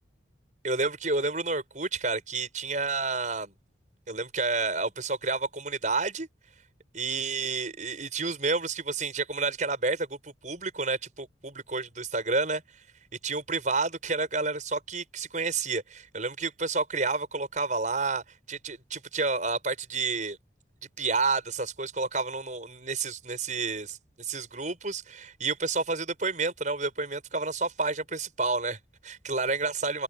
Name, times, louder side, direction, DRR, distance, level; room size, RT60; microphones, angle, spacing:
voice 1, 0.6-3.5 4.1-6.3 6.9-12.6 13.2-18.2 18.5-20.4 21.0-30.0, right 3 dB, 40° right, 6.4 m, -30 dB
open air
head